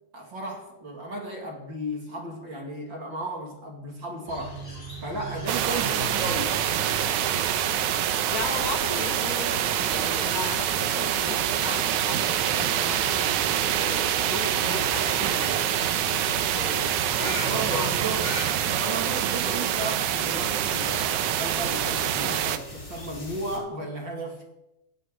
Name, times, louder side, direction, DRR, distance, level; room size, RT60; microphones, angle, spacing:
voice 1, 0.1-4.6 5.0-6.6 17.4-24.5, right 1 dB, 40° right, 2.7 m, -34 dB
sound 1, 4.3-23.6, equal, 15° left, 5.1 m, -40 dB
sound 2, 5.5-22.6, right 10 dB, 70° right, 2.1 m, -26 dB
voice 2, 5.7-6.1 8.3-17.9 19.4-19.7, left 4 dB, 85° left, 3.7 m, -37 dB
18.0 x 16.5 x 3.8 m
omnidirectional pair, 3.7 m